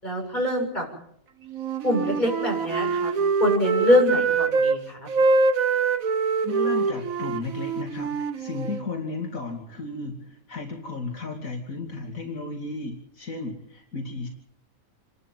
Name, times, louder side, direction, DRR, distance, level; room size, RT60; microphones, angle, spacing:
voice 1, 0.0-0.9 1.8-3.1 3.4-5.1, left 1 dB, 35° left, 0 dB, 7.3 m, -24 dB
Wind instrument woodwind instrument, 1.5-4.8 5.1-8.8, right 4 dB, 80° right, 1.7 m, -24 dB
voice 2, 6.4-14.3, left 3 dB, 80° left, 2 dB, 3.0 m, -34 dB
28.5 x 12.0 x 9.2 m, 0.72 s
omnidirectional pair, 1.4 m